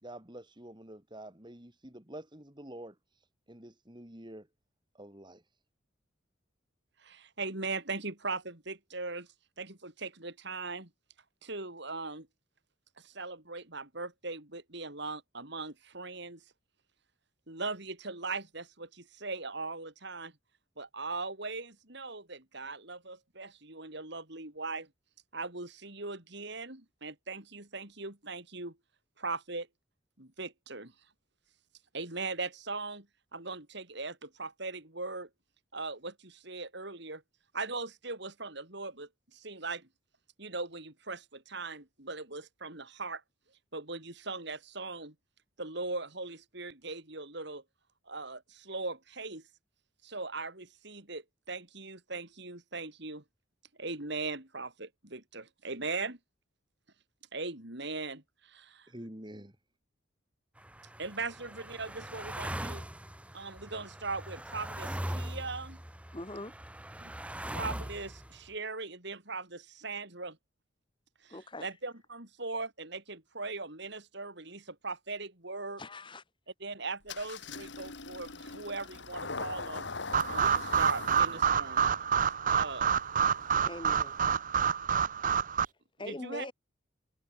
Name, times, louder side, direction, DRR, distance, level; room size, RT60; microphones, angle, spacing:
voice 1, 0.0-2.9 3.5-4.5 4.9-5.4 58.9-59.5, right 1 dB, 20° right, 3.1 m, -47 dB
voice 2, 7.0-9.3 9.6-10.9 11.4-12.3 13.0-16.4 17.5-20.3 20.8-24.9 25.3-28.8 29.2-29.7 30.2-30.9 31.9-33.1 33.3-35.3 35.7-37.2 37.5-39.9 40.4-43.2 43.7-45.1 45.6-47.6 48.1-49.4 50.0-53.2 53.8-56.2 57.3-58.9 61.0-62.9 63.3-65.8 67.0-67.1 67.5-70.4 71.2-75.8 76.6-79.9 80.3-81.8 82.5-82.9 86.1-86.5, right 3 dB, 60° right, 4.2 m, -39 dB
sound 1, 60.6-68.5, right 1 dB, 5° right, 2.1 m, -41 dB
voice 3, 66.1-66.5 71.3-71.7 75.8-76.2 83.6-84.1 86.0-86.5, left 1 dB, 25° left, 2.5 m, -42 dB
Engine starting, 77.1-84.4, left 4 dB, 60° left, 1.9 m, -43 dB
sound 2, 80.1-85.6, right 7 dB, 40° right, 0.6 m, -28 dB
head